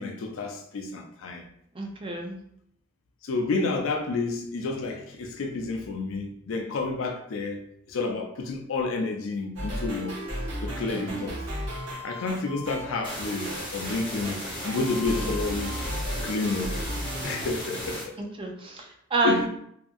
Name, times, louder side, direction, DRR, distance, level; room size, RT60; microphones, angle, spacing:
voice 1, 0.0-1.4 3.2-7.6 7.9-10.2 10.6-11.4 12.0-15.8 16.2-16.8 17.2-18.2 19.2-19.4, left 3 dB, 85° left, 0.4 m, -30 dB
voice 2, 1.7-2.4 10.9-11.3 15.2-15.3 18.4-19.5, right 2 dB, 25° right, 0.4 m, -29 dB
sound 1, 9.6-17.5, equal, 65° right, 0.8 m, -35 dB
sound 2, 13.0-18.0, left 1 dB, 25° left, 0.7 m, -36 dB
2.7 x 2.5 x 2.4 m
head